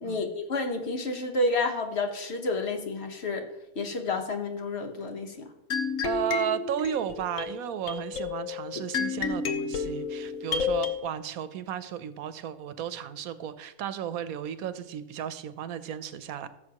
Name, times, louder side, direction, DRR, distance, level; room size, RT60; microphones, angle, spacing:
voice 1, 0.0-3.5 3.8-5.5, left 2 dB, 50° left, 5 dB, 1.3 m, -30 dB
sound 1, 5.7-11.0, left 6 dB, 70° left, 1.2 m, -31 dB
voice 2, 6.0-16.5, right 9 dB, 85° right, 13 dB, 1.1 m, -34 dB
15.0 x 6.9 x 2.9 m, 0.91 s
omnidirectional pair, 1.5 m